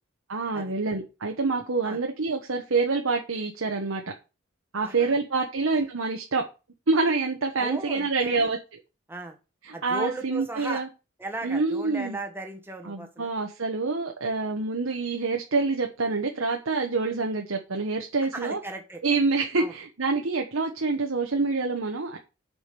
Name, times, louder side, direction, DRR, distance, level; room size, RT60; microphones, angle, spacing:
voice 1, 0.3-4.0 4.7-6.4 6.9-8.6 9.7-10.9 11.4-12.2 12.8-18.6 19.0-22.2, right 3 dB, 85° right, 2 dB, 1.1 m, -26 dB
voice 2, 4.8-5.2 7.6-8.5 9.1-9.4 9.7-10.8 11.2-13.3 18.3-19.0 19.6-19.7, right 2 dB, 10° right, 3 dB, 1.4 m, -36 dB
8.2 x 5.1 x 5.2 m, 0.30 s
head